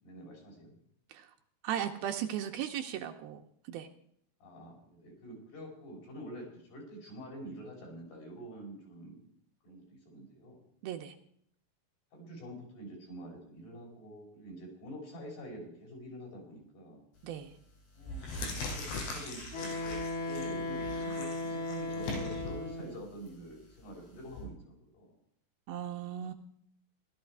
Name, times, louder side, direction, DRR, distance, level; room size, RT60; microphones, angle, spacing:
voice 1, 0.0-0.7 4.4-9.2 9.6-10.6 12.1-17.0 17.9-25.2, equal, 70° left, -1 dB, 6.8 m, -47 dB
voice 2, 1.6-3.4 3.7-3.9 10.8-11.2 17.2-17.5 25.7-26.3, right 10 dB, 80° right, 5 dB, 2.4 m, -36 dB
sound 1, 17.2-17.5 17.9-24.4, left 2 dB, 85° left, 5.6 m, -41 dB
Wind instrument woodwind instrument, 19.5-23.0, left 2 dB, 45° left, 2.3 m, -36 dB
16.0 x 13.0 x 4.6 m, 0.68 s
omnidirectional pair, 4.8 m